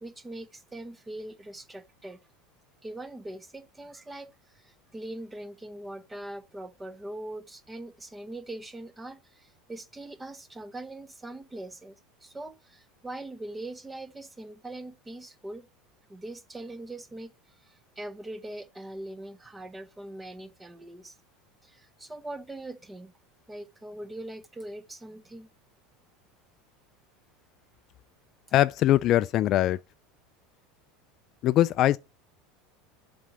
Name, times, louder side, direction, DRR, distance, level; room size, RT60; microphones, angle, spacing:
voice 1, 0.0-2.2 2.8-12.0 12.2-15.7 16.1-17.3 17.6-21.1 21.6-23.1 23.5-25.5, right 1 dB, 10° right, 0.8 m, -41 dB
voice 2, 28.5-29.8 31.4-32.0, left 13 dB, 40° left, 0.3 m, -22 dB
7.5 x 4.1 x 4.9 m
supercardioid pair, 145°, 0 cm